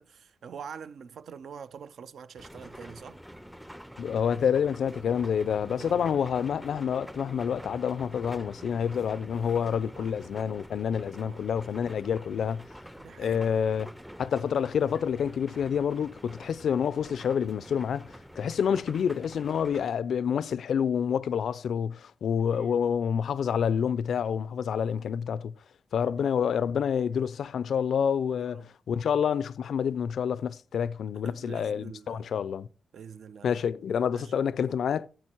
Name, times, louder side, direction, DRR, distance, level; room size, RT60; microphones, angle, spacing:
voice 1, 0.0-3.2 5.7-6.1 9.9-10.1 11.2-11.5 13.0-13.4 22.5-22.7 26.2-26.3 28.4-28.7 31.2-32.3 32.9-33.5 34.1-34.4, right 6 dB, 75° right, 0.5 m, -45 dB
sound 1, 2.4-19.9, equal, ahead, 0.5 m, -47 dB
voice 2, 4.0-12.6 13.2-13.9 14.2-25.5 25.9-32.7 33.4-35.1, left 7 dB, 75° left, 0.4 m, -28 dB
11.0 x 7.7 x 4.4 m
cardioid pair, 110°, 0 cm